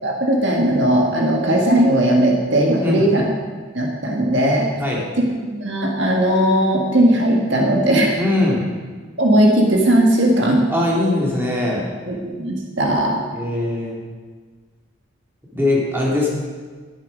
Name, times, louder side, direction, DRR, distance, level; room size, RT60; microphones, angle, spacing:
voice 1, 0.0-3.3 3.7-4.7 5.5-8.1 9.2-10.6 12.1-13.2, right 1 dB, 60° right, 0 dB, 1.7 m, -17 dB
voice 2, 8.2-8.7 10.7-11.9 13.3-14.0 15.5-16.4, left 2 dB, 10° right, -4 dB, 2.4 m, -21 dB
11.5 x 10.5 x 5.1 m, 1.5 s
head